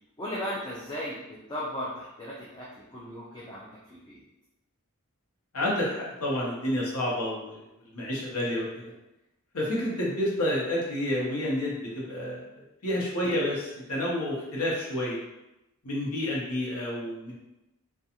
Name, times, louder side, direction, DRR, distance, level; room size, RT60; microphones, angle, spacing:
voice 1, 0.2-4.2, equal, 20° left, -7 dB, 0.4 m, -37 dB
voice 2, 5.5-7.6 7.9-8.9 9.5-12.5 12.8-15.2 15.8-17.3, left 1 dB, 90° left, -4 dB, 0.8 m, -29 dB
2.4 x 2.3 x 2.8 m, 0.93 s
head